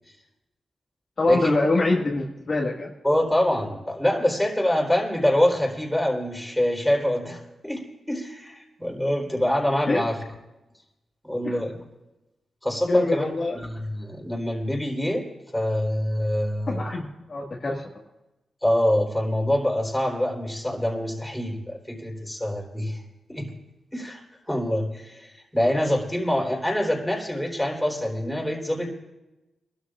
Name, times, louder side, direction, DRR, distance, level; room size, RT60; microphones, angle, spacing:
voice 1, 1.2-2.9 9.9-10.0 11.4-11.6 12.9-13.6 16.7-17.8, left 2 dB, 50° left, -2 dB, 1.9 m, -24 dB
voice 2, 3.0-10.2 11.2-11.8 12.6-13.3 13.5-15.3 15.5-16.9 18.6-23.0 23.3-23.5 23.9-29.0, left 1 dB, 5° left, -1 dB, 3.9 m, -25 dB
26.0 x 13.0 x 2.5 m, 1.0 s
cardioid pair, 80°, 0 cm